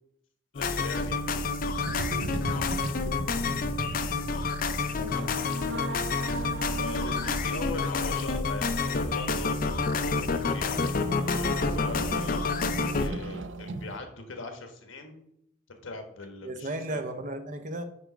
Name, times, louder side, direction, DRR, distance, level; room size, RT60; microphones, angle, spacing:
voice 1, 0.5-1.8 6.7-9.6 9.9-15.1 15.8-17.0, left 3 dB, 85° left, 6 dB, 1.2 m, -41 dB
sound 1, 0.5-13.1, left 4 dB, 45° left, 0.5 m, -29 dB
sound 2, 1.9-14.0, right 2 dB, 70° right, 0.5 m, -39 dB
voice 2, 4.9-5.4 16.4-17.8, right 1 dB, 40° right, 8 dB, 0.7 m, -35 dB
sound 3, 6.4-12.1, equal, 10° right, 0.6 m, -44 dB
9.7 x 3.4 x 5.0 m, 0.76 s
head